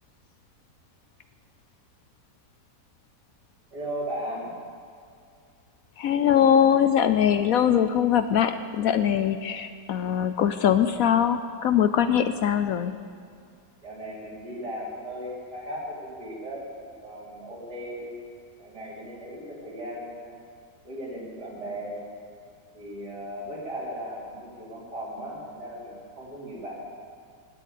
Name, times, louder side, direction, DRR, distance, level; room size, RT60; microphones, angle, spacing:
voice 1, 3.7-4.6 13.8-16.6 17.0-18.2 18.6-20.3 20.8-22.0 22.7-26.8, equal, 75° right, -5 dB, 4.7 m, -37 dB
voice 2, 6.0-12.9, left 9 dB, 65° left, 11 dB, 1.0 m, -22 dB
19.0 x 8.3 x 8.5 m, 2.3 s
omnidirectional pair, 1.8 m